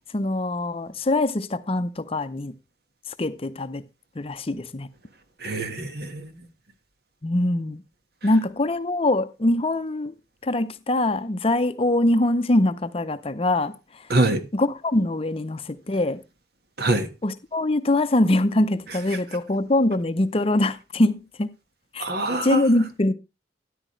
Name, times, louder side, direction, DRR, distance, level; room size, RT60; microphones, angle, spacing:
voice 1, 0.1-2.5 3.2-3.8 4.2-4.9 7.2-7.8 8.2-10.1 10.4-14.1 14.5-16.2 17.2-21.5 21.9-22.1 22.4-23.1, left 1 dB, 35° left, 0.6 m, -23 dB
voice 2, 5.4-6.3 14.1-14.4 16.8-17.1 22.0-22.6, right 2 dB, 60° right, 1.5 m, -24 dB
13.0 x 10.0 x 3.2 m
head